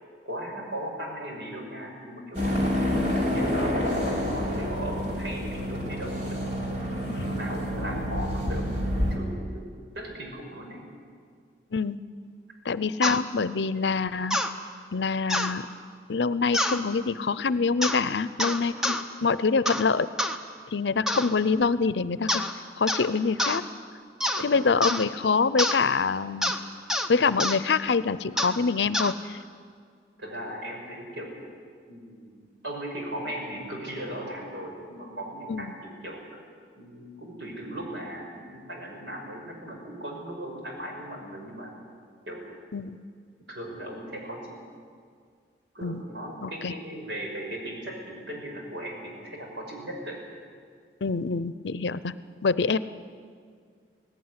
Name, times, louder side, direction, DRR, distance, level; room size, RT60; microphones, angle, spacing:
voice 1, 0.2-3.8 4.3-6.4 6.9-9.7 9.9-10.8 18.4-18.7 24.3-24.7 30.2-31.4 31.9-36.4 36.8-41.7 42.2-42.5 43.5-44.5 45.7-50.2, right 1 dB, 80° right, 0 dB, 5.8 m, -38 dB
sound 1, 2.3-9.2, equal, 40° right, 3.7 m, -28 dB
voice 2, 12.6-14.4 14.9-15.7 16.1-20.1 20.7-22.4 22.8-23.6 24.4-26.5 27.1-29.4 35.5-35.7 42.7-43.0 45.8-46.0 46.4-46.7 51.0-52.1 52.4-52.8, left 4 dB, 75° left, 16 dB, 0.6 m, -25 dB
sound 2, 13.0-13.2 14.3-14.5 15.3-15.5 16.5-16.8 17.8-18.0 18.4-19.0 19.7-19.9 20.2-20.4 21.1-21.3 22.3-22.5 22.9-23.1 23.4-23.6 24.2-24.5 24.8-25.0 25.6-25.8 26.4-26.6 26.9-27.1 27.4-27.6 28.4-28.6 28.9-29.1, left 1 dB, 5° right, 0.8 m, -27 dB
18.0 x 17.0 x 9.7 m, 2.1 s
head